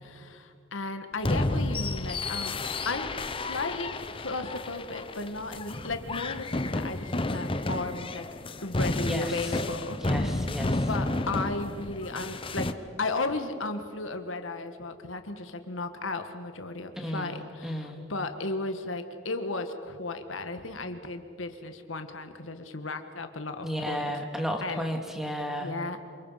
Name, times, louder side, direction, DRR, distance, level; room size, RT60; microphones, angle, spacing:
voice 1, 0.0-2.6 2.8-8.2 8.6-10.0 10.9-12.7 13.0-24.0 24.6-24.8 25.6-26.0, left 3 dB, 80° left, 8 dB, 1.7 m, -35 dB
sound 1, 1.2-12.7, left 2 dB, 25° left, 0.9 m, -31 dB
voice 2, 9.0-9.5 9.9-10.9 17.0-18.0 23.6-25.7, equal, ahead, 3 dB, 2.3 m, -33 dB
27.5 x 25.5 x 5.8 m, 2.3 s
head